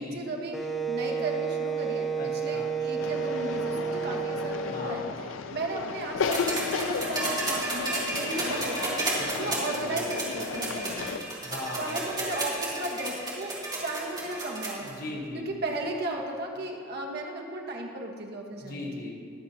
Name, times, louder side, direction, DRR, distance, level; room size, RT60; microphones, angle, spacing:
voice 1, 0.0-9.1 9.4-11.3 11.7-15.0 15.3-18.8, right 2 dB, 55° right, 0 dB, 1.3 m, -35 dB
Wind instrument woodwind instrument, 0.5-5.2, right 5 dB, ahead, 0.7 m, -31 dB
voice 2, 2.2-2.7 4.7-5.2 9.1-9.9 11.4-12.3 14.8-15.5 18.6-19.1, left 2 dB, 50° left, -3 dB, 1.8 m, -39 dB
sound 1, 3.0-11.2, left 5 dB, 80° left, 0.5 m, -34 dB
sound 2, 6.2-14.9 16.1-16.2, right 2 dB, 20° right, 2.5 m, -32 dB
22.0 x 7.5 x 2.9 m, 2.2 s
head